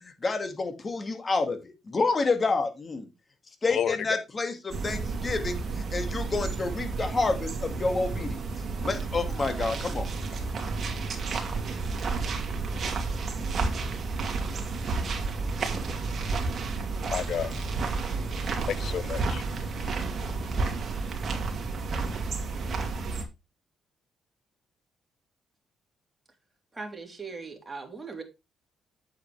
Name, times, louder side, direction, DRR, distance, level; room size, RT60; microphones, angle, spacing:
voice 1, 0.0-3.1 3.6-8.4 8.8-10.1, left 3 dB, 30° left, 2.1 m, -29 dB
sound 1, 4.7-23.3, right 4 dB, 45° right, 2.6 m, -31 dB
voice 2, 17.0-20.5, left 8 dB, 65° left, 0.6 m, -34 dB
voice 3, 26.7-28.2, right 4 dB, 20° right, 3.1 m, -39 dB
8.6 x 7.6 x 3.3 m
cardioid pair, 90°, 0 cm